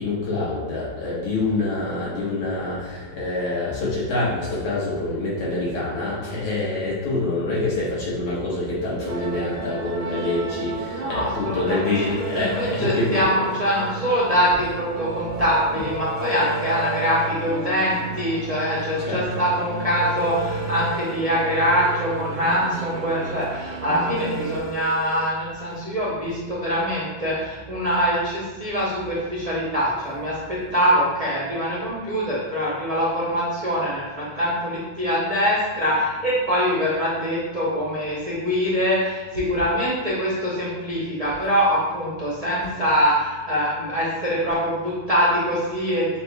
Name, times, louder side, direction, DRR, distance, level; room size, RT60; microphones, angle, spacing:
voice 1, 0.0-13.2 19.1-19.2, left 2 dB, 80° left, -7 dB, 2.3 m, -26 dB
sound 1, 9.1-24.6, right 3 dB, 85° right, 1.4 m, -33 dB
voice 2, 10.8-46.2, equal, 65° right, -8 dB, 0.3 m, -24 dB
sound 2, 12.2-13.2 16.2-17.2 20.2-21.2 24.2-25.2, right 2 dB, 60° left, 1.8 m, -33 dB
6.2 x 2.3 x 3.4 m, 1.3 s
omnidirectional pair, 2.2 m